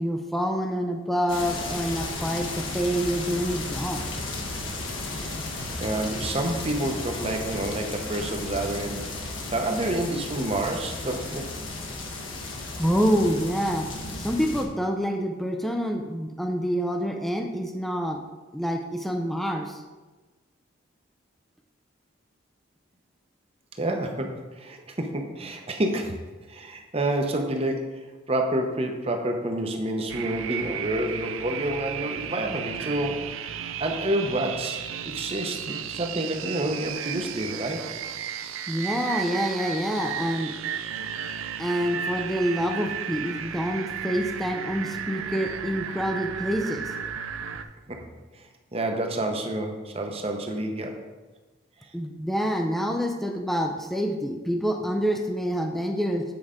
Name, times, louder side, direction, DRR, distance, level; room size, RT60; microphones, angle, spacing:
voice 1, 0.0-4.1 12.8-13.9 14.2-18.2 18.5-19.8 38.7-40.5 41.6-46.9 51.9-56.2, equal, ahead, 3 dB, 0.4 m, -27 dB
sound 1, 1.3-14.6, left 2 dB, 70° left, 1.2 m, -34 dB
voice 2, 5.7-9.1 9.5-11.5 23.8-26.2 26.5-33.2 33.8-37.8 47.9-48.0 48.3-51.0, right 1 dB, 30° right, 3 dB, 0.7 m, -29 dB
sound 2, 30.1-47.6, right 8 dB, 80° right, 0.4 m, -34 dB
8.7 x 4.8 x 3.7 m, 1.2 s
head